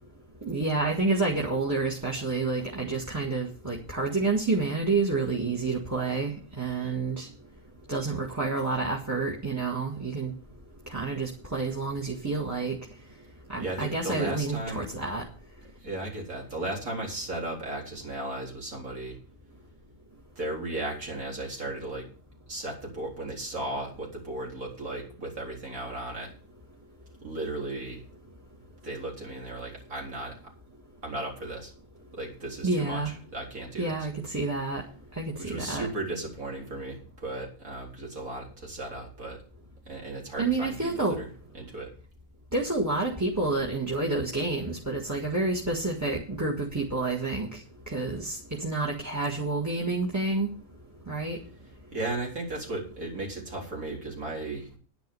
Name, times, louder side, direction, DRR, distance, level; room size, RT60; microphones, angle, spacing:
voice 1, 0.4-7.3 7.9-10.3 10.9-12.8 13.5-15.2 32.6-33.1 33.8-34.8 35.2-35.9 40.4-41.2 42.5-50.5 51.1-51.4, right 3 dB, 10° right, 0 dB, 1.7 m, -29 dB
voice 2, 13.6-14.8 15.8-19.2 20.4-22.1 22.5-26.3 27.2-28.1 28.8-30.5 31.0-31.7 32.1-34.0 35.4-39.4 39.9-41.3 41.5-41.9 51.9-54.8, right 2 dB, 80° right, -2 dB, 4.4 m, -35 dB
10.5 x 10.0 x 5.4 m, 0.42 s
omnidirectional pair, 1.4 m